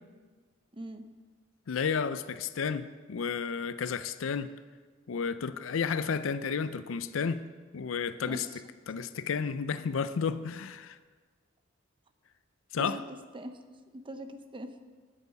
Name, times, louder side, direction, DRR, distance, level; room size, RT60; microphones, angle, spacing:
voice 1, 0.7-1.0 8.3-8.6 12.8-13.6 13.9-14.8, right 1 dB, 25° right, 0.8 m, -42 dB
voice 2, 1.7-4.5 5.1-7.4 7.7-8.5 8.9-11.0 12.7-13.0, left 6 dB, 75° left, 0.5 m, -32 dB
9.7 x 9.3 x 6.9 m
head